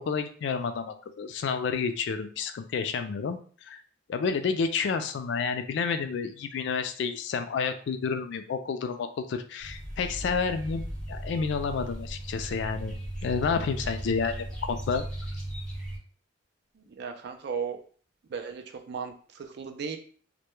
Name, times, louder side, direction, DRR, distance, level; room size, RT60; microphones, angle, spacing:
voice 1, 0.0-3.8 4.1-12.9 13.2-15.0, left 5 dB, 65° left, 8 dB, 0.3 m, -30 dB
sound 1, 9.6-16.0, right 1 dB, 5° left, 0.9 m, -37 dB
voice 2, 16.9-17.8 18.3-20.0, right 6 dB, 60° right, 5 dB, 0.4 m, -36 dB
2.1 x 2.1 x 3.0 m, 0.44 s
head